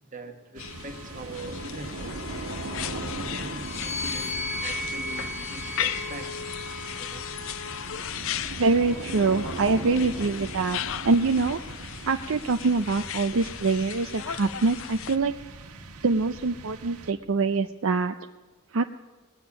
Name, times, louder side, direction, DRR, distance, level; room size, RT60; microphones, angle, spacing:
voice 1, 0.0-2.2 3.0-6.4 7.0-7.3, right 2 dB, 35° right, 5 dB, 1.5 m, -42 dB
sound 1, 0.5-17.5, right 2 dB, 85° right, 1.3 m, -39 dB
sound 2, 0.6-15.2, left 10 dB, 60° left, 0.4 m, -36 dB
sound 3, 3.6-7.2 8.0-9.6, left 1 dB, ahead, 1.5 m, -37 dB
voice 2, 8.6-11.6 12.1-15.3 16.0-18.1 18.7-18.9, right 3 dB, 60° right, 7 dB, 0.5 m, -24 dB
20.0 x 7.0 x 8.5 m, 1.3 s
head